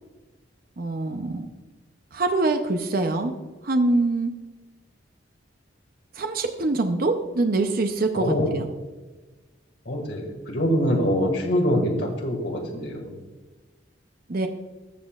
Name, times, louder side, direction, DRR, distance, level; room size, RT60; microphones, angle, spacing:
voice 1, 0.8-1.5 2.1-3.3 3.6-4.3 6.1-8.7 14.3-14.5, right 2 dB, 50° right, 5 dB, 0.6 m, -24 dB
voice 2, 8.2-8.5 9.9-13.2, equal, 65° left, 2 dB, 1.9 m, -24 dB
13.5 x 7.2 x 2.4 m, 1.2 s
head